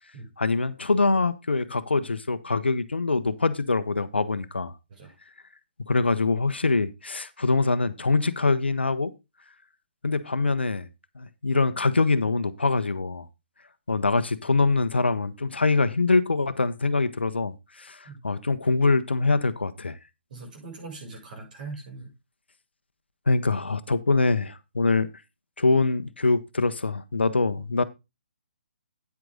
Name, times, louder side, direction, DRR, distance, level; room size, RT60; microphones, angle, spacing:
voice 1, 0.4-4.7 5.9-9.1 10.0-10.9 11.2-13.3 13.9-20.0 23.3-25.1 25.6-27.8, left 3 dB, 80° left, 0.9 m, -24 dB
voice 2, 20.3-22.1, right 3 dB, 50° right, 7.0 m, -41 dB
9.6 x 7.8 x 3.8 m
figure-of-eight pair, 135°, 6 cm